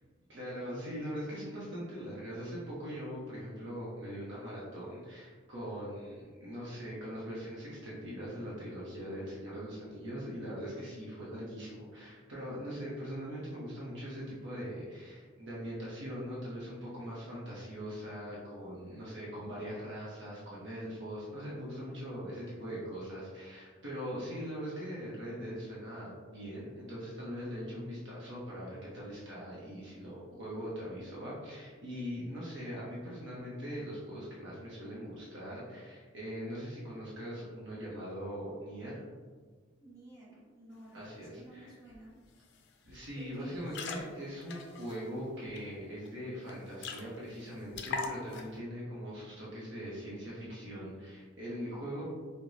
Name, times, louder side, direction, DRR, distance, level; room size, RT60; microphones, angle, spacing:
voice 1, 0.3-39.0 40.9-41.7 42.8-52.0, equal, 60° right, -7 dB, 0.8 m, -41 dB
voice 2, 39.8-42.1 43.1-43.7, right 1 dB, 20° right, -10 dB, 1.4 m, -53 dB
sound 1, 41.9-42.0 42.3-42.6 42.9-43.1 43.5-45.6 46.0-46.1 46.4-46.5 46.8-47.4 47.7-48.6, left 4 dB, 60° left, 0.4 m, -41 dB
4.7 x 2.2 x 2.6 m, 1.5 s
head